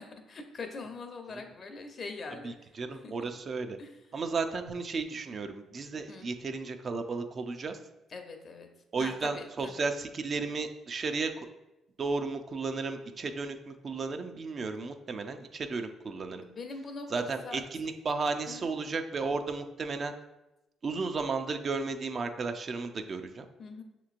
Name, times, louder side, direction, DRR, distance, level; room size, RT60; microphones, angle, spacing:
voice 1, 0.0-3.1 3.8-4.0 6.1-6.3 8.1-8.7 9.0-9.9 16.4-17.6 18.5-18.7 23.6-23.8, left 3 dB, 50° left, 5 dB, 0.7 m, -43 dB
voice 2, 2.4-3.8 4.1-7.8 8.9-11.5 12.0-16.4 17.1-20.1 20.8-23.5, right 4 dB, 50° right, 7 dB, 0.5 m, -34 dB
6.3 x 3.0 x 2.5 m, 0.95 s
supercardioid pair, 60°, 0 cm